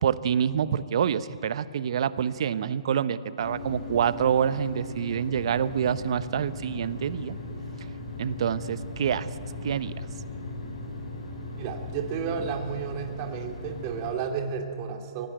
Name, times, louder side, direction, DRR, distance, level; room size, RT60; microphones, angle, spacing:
voice 1, 0.0-7.4 8.2-9.3 9.6-10.0, right 8 dB, 60° right, 15 dB, 0.9 m, -27 dB
sound 1, 3.4-14.1, left 2 dB, 75° left, 7.6 m, -38 dB
voice 2, 11.6-15.3, right 7 dB, 35° right, 4 dB, 2.4 m, -32 dB
24.0 x 17.5 x 9.2 m, 2.5 s
hypercardioid pair, 130°, 3 cm